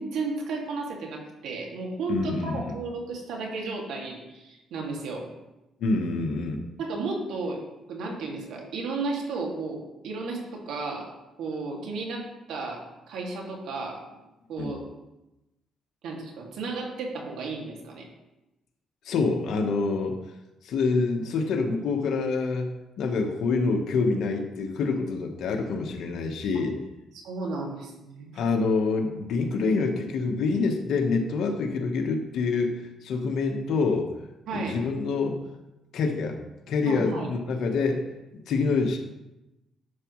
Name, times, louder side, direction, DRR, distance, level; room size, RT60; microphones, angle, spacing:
voice 1, 0.0-5.3 6.8-7.6 7.9-11.1 11.4-14.0 14.5-14.9 16.0-18.1 27.1-28.4 34.5-34.8 36.9-37.3, right 3 dB, 80° right, 0 dB, 2.2 m, -33 dB
voice 2, 2.1-2.7 5.8-6.6 14.6-14.7 19.0-20.2 20.6-26.8 28.3-34.1 34.5-35.4 35.9-36.4 36.7-38.0 38.5-39.0, left 4 dB, 75° left, 2 dB, 1.1 m, -26 dB
11.0 x 7.2 x 3.1 m, 0.97 s
cardioid pair, 90°, 0 cm